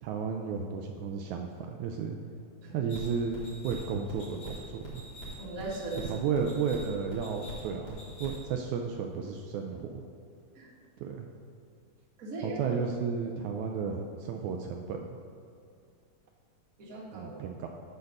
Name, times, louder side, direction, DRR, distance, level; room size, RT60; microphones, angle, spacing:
voice 1, 0.0-2.2 2.7-5.0 6.0-10.0 11.0-11.3 12.4-15.2 17.1-17.7, right 6 dB, 80° right, 3 dB, 1.7 m, -33 dB
sound 1, 2.9-8.6, right 1 dB, 60° left, 3.7 m, -44 dB
voice 2, 5.4-6.1 10.5-10.7 12.2-12.8 16.8-17.3, right 2 dB, 40° right, -4 dB, 1.4 m, -38 dB
8.1 x 5.3 x 6.5 m, 2.4 s
omnidirectional pair, 3.8 m